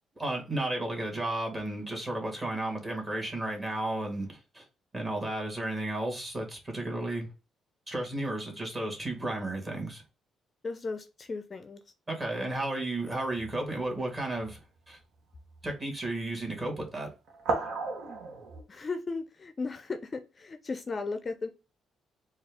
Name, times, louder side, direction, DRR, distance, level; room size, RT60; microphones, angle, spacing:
voice 1, 0.2-4.6 4.9-7.3 7.9-10.0 12.1-14.6 14.9-15.0 15.6-17.1, right 1 dB, 25° right, 1.8 m, -33 dB
voice 2, 10.6-11.8 18.7-21.5, left 4 dB, 35° left, 0.4 m, -36 dB
sound 1, 13.0-13.8 14.3-14.6 15.4-15.6 17.3-18.6, right 3 dB, 75° right, 0.9 m, -35 dB
4.2 x 2.4 x 3.5 m
cardioid pair, 90°, 0 cm